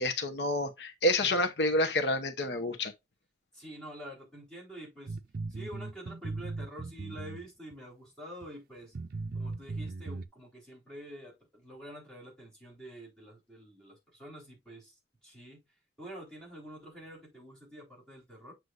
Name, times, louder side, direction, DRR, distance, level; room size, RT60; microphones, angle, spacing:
voice 1, 0.0-2.9, left 1 dB, 75° left, 0.9 m, -28 dB
voice 2, 3.5-5.2 5.5-8.9 9.3-14.9 15.2-15.6 16.0-18.5, equal, 5° left, 3.9 m, -47 dB
sound 1, 5.1-7.7 8.4-8.5 8.9-10.3, right 3 dB, 55° right, 0.5 m, -38 dB
7.9 x 6.1 x 2.5 m
head